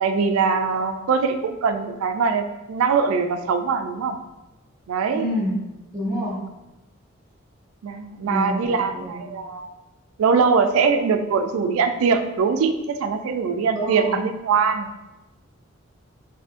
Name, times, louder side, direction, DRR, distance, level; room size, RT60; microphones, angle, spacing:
voice 1, 0.0-4.2 4.9-5.2 7.8-9.8 10.2-14.9, right 5 dB, 80° right, 8 dB, 0.3 m, -22 dB
voice 2, 5.1-5.5 5.9-6.4 8.2-9.1 13.7-14.2, equal, 15° right, -6 dB, 0.6 m, -27 dB
3.6 x 2.7 x 2.4 m, 1.0 s
head